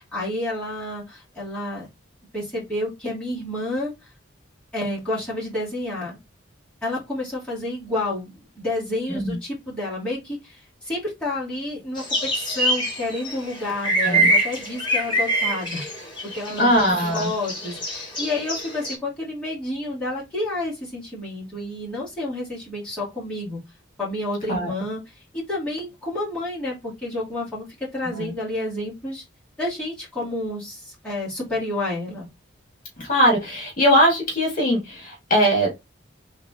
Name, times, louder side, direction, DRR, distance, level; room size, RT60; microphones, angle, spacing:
voice 1, 0.0-1.9 2.3-3.9 4.7-6.2 6.8-16.9 17.1-23.6 24.0-25.1 25.5-29.2 29.6-32.3, left 1 dB, 5° left, -9 dB, 2.4 m, -30 dB
sound 1, 12.0-19.0, right 1 dB, 25° left, 1.9 m, -25 dB
voice 2, 16.6-17.3 24.5-24.7 28.2-28.3 33.0-35.7, equal, 45° left, -1 dB, 2.1 m, -20 dB
3.9 x 3.7 x 3.7 m, 0.22 s
head